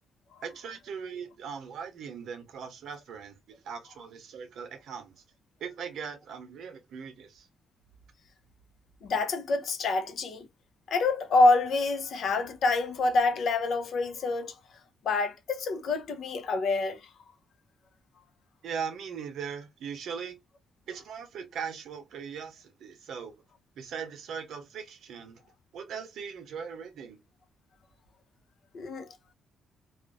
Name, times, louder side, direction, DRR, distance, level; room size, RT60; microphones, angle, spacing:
voice 1, 0.4-3.4 3.6-5.2 5.6-7.5 18.6-20.3 20.9-23.3 23.8-25.4 25.7-27.2, right 6 dB, 75° right, 0.7 m, -39 dB
voice 2, 9.0-10.5 10.9-14.5 15.0-17.0 28.7-29.1, left 3 dB, 65° left, 0.5 m, -26 dB
2.4 x 2.1 x 2.5 m
cardioid pair, 85°, 0 cm